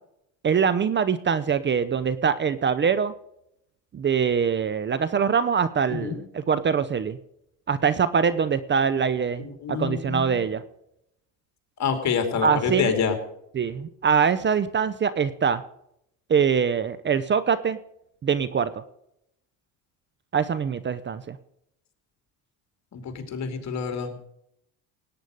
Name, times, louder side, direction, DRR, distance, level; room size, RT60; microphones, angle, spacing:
voice 1, 0.4-3.1 3.9-7.2 7.7-10.6 12.4-12.9 13.6-15.6 16.3-17.8 18.2-18.7 20.3-21.4, right 6 dB, 30° right, 15 dB, 0.8 m, -23 dB
voice 2, 9.4-10.5 11.8-13.2 22.9-24.2, left 6 dB, 45° left, 6 dB, 3.0 m, -27 dB
17.5 x 9.4 x 5.3 m, 0.77 s
supercardioid pair, 90°, 37 cm